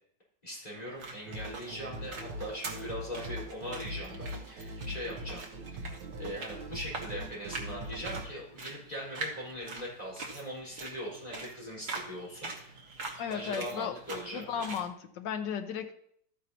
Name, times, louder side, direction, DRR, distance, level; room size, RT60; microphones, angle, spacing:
voice 1, 0.4-5.8 6.2-12.9 13.3-14.7, equal, 20° left, -6 dB, 4.7 m, -41 dB
sound 1, 0.7-14.9, right 3 dB, 50° right, 1.8 m, -44 dB
sound 2, 1.3-8.3, right 1 dB, 75° right, 1.6 m, -41 dB
voice 2, 13.2-14.0 14.3-15.9, left 7 dB, 80° left, 7 dB, 1.5 m, -35 dB
13.5 x 9.4 x 2.9 m, 0.68 s
omnidirectional pair, 1.9 m